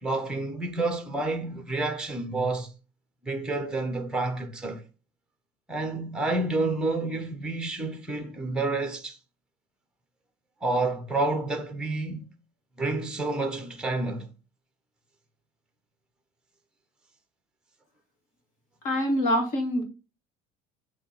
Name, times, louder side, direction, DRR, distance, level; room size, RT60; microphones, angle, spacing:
voice 1, 0.0-2.7 3.2-4.8 5.7-9.2 10.6-12.2 12.8-14.3, right 2 dB, 5° right, 1.0 m, -29 dB
voice 2, 18.8-19.8, equal, 50° left, 2.1 m, -25 dB
7.9 x 3.0 x 4.9 m
cardioid pair, 165°, 18 cm